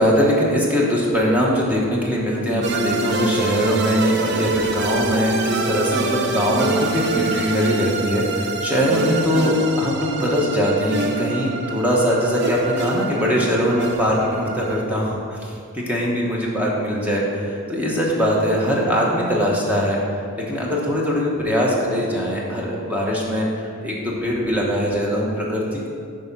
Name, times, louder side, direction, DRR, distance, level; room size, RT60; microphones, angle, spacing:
voice 1, 0.0-20.0 20.4-25.9, equal, 5° right, -4 dB, 1.1 m, -21 dB
sound 1, 2.6-14.8, right 3 dB, 50° right, 0.5 m, -26 dB
6.8 x 5.0 x 5.4 m, 2.3 s
head